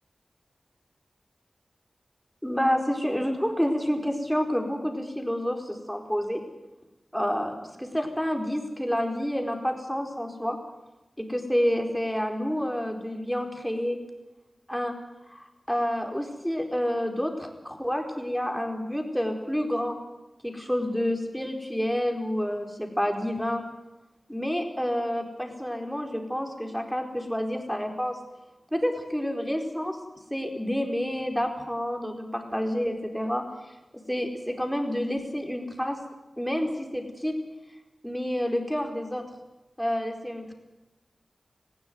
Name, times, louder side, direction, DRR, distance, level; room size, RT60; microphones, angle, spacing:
voice 1, 2.4-6.4 7.1-10.6 11.2-14.0 14.7-14.9 15.3-20.0 20.4-23.6 24.3-28.2 28.7-30.0 30.3-33.4 34.1-36.0 36.4-37.4 38.0-39.2 39.8-40.5, equal, ahead, 4 dB, 4.5 m, -29 dB
19.5 x 15.5 x 9.6 m, 0.99 s
cardioid pair, 50°, 0 cm